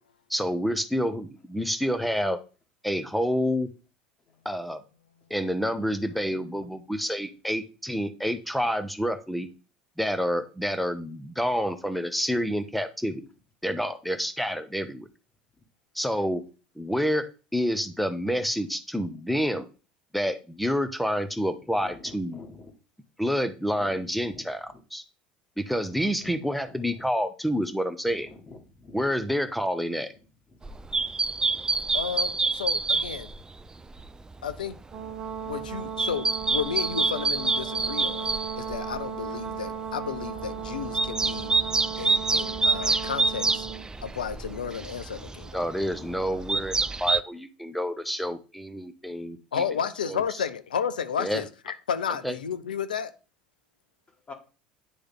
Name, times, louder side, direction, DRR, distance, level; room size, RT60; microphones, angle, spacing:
voice 1, 0.3-2.4 2.8-3.7 4.4-4.8 5.3-9.5 10.0-13.2 13.6-15.1 15.9-16.4 16.8-19.7 20.1-22.4 23.2-25.0 25.6-28.3 28.9-30.1 45.5-49.6 50.0-50.2 51.2-51.4 52.2-52.4, equal, ahead, 0.9 m, -28 dB
voice 2, 21.8-22.7 23.9-24.4 28.5-29.0 54.3-54.4, left 3 dB, 30° left, 1.8 m, -46 dB
sound 1, 30.6-33.5 33.9-34.6 35.1-39.0 39.5-39.7 40.1-47.2, right 3 dB, 15° right, 0.4 m, -27 dB
voice 3, 31.9-33.3 34.4-34.8 35.5-41.5 42.0-43.7 44.0-45.5 49.5-53.1, left 7 dB, 80° left, 0.5 m, -32 dB
Brass instrument, 34.9-43.9, right 7 dB, 40° right, 1.1 m, -36 dB
9.6 x 3.3 x 3.7 m
figure-of-eight pair, 70°, 5 cm